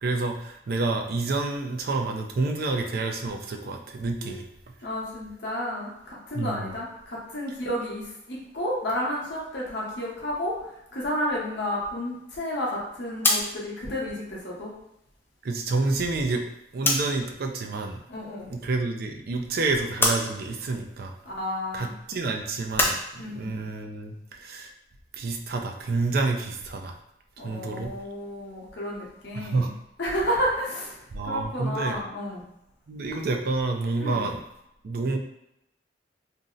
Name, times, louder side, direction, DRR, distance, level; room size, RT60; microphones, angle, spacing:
voice 1, 0.0-4.4 6.3-6.8 15.4-16.4 16.7-18.0 18.5-21.1 21.7-24.7 25.1-26.9 27.4-27.9 29.3-29.7 31.1-32.0 32.9-34.4 34.8-35.2, right 3 dB, 55° right, 4 dB, 0.4 m, -28 dB
voice 2, 4.8-14.7 18.1-18.5 21.2-21.9 23.2-23.5 27.4-29.7 30.0-31.0 31.2-32.4 34.0-34.3, equal, 70° left, -4 dB, 0.8 m, -31 dB
sound 1, 13.0-17.3 17.6-18.7 19.0-23.0, left 1 dB, 15° left, 0.4 m, -29 dB
2.6 x 2.0 x 3.7 m, 0.83 s
head